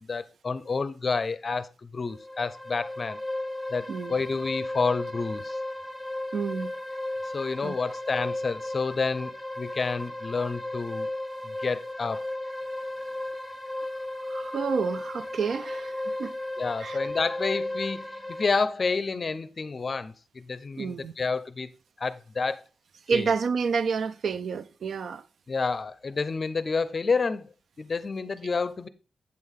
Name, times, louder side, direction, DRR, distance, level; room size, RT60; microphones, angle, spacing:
voice 1, 0.0-3.2 3.7-5.6 7.3-11.1 11.4-12.2 16.6-21.7 22.0-22.6 23.1-23.3 25.5-27.5 27.8-28.9, left 4 dB, 35° left, 0.5 m, -29 dB
sound 1, 2.1-18.5, left 1 dB, ahead, 0.8 m, -35 dB
voice 2, 6.3-6.7 7.6-7.7 14.3-16.4 16.8-17.0 20.8-21.1 23.1-25.2, right 5 dB, 60° right, 0.3 m, -29 dB
8.4 x 6.4 x 3.6 m
wide cardioid pair, 165°, 0 cm